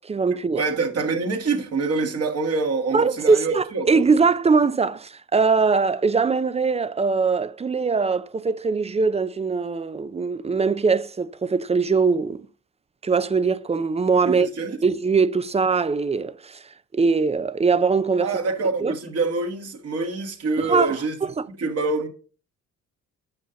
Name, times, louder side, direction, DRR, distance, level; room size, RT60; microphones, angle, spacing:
voice 1, 0.0-0.6 2.9-12.5 13.0-14.5 14.8-16.6 16.9-18.3 18.8-18.9 20.6-20.9 21.4-21.5, right 4 dB, 20° right, 0.5 m, -21 dB
voice 2, 0.5-4.1 14.2-14.8 18.2-21.2 21.6-22.1, right 3 dB, 55° right, 1.8 m, -25 dB
8.9 x 5.5 x 3.8 m
cardioid pair, 90°, 30 cm